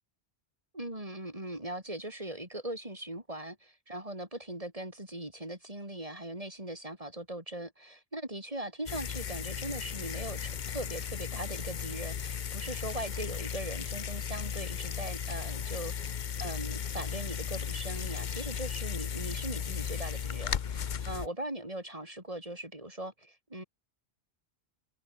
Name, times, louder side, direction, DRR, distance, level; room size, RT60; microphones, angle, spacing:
voice 1, 0.7-23.6, right 1 dB, 30° right, 5.6 m, -40 dB
sound 1, 8.9-21.3, left 8 dB, 50° left, 0.8 m, -36 dB
omnidirectional pair, 1.1 m